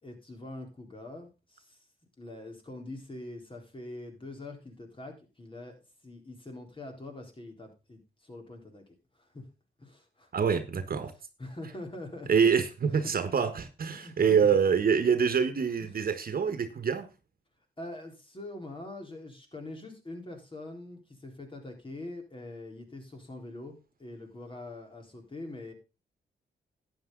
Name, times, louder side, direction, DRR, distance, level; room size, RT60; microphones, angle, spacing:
voice 1, 0.0-1.8 2.2-5.8 6.0-8.8 9.1-9.5 9.8-10.3 11.4-12.4 13.9-14.4 15.8-15.9 17.8-25.7, left 2 dB, 30° left, 3.9 m, -44 dB
voice 2, 10.3-11.1 12.3-17.1, right 6 dB, 55° right, 1.5 m, -25 dB
11.5 x 9.1 x 3.9 m
cardioid pair, 65°, 18 cm